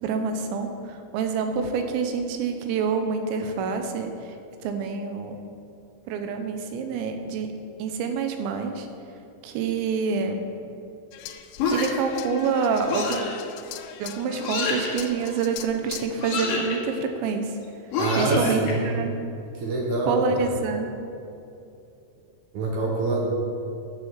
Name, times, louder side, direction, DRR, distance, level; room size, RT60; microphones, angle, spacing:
voice 1, 0.0-4.1 4.6-5.4 6.1-7.5 7.8-8.9 9.4-10.4 11.7-13.2 14.0-17.5 18.2-19.2 20.1-20.9, right 5 dB, 85° right, 6 dB, 3.2 m, -27 dB
sound 1, 11.1-16.1, left 11 dB, 80° left, 2.8 m, -40 dB
sound 2, 11.6-12.1 12.9-13.3 14.4-14.9 16.2-16.8 17.9-18.7, left 4 dB, 60° left, 3.1 m, -27 dB
voice 2, 18.0-18.9 19.5-20.5 22.5-23.3, right 2 dB, 70° right, -1 dB, 1.9 m, -25 dB
10.5 x 6.6 x 7.4 m, 2.6 s
omnidirectional pair, 5.1 m